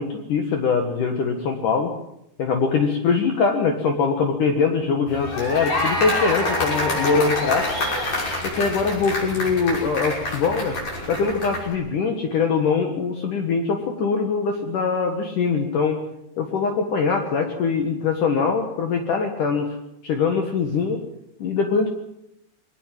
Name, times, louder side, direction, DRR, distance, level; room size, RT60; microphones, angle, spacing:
voice 1, 0.0-1.9 2.4-7.7 8.4-10.8 11.1-16.0 16.4-19.8 20.0-21.0 21.4-21.9, left 5 dB, 60° left, 4 dB, 2.6 m, -22 dB
sound 1, 5.1-11.7, left 1 dB, 40° left, 7.3 m, -26 dB
22.0 x 19.0 x 7.5 m, 0.80 s
omnidirectional pair, 5.1 m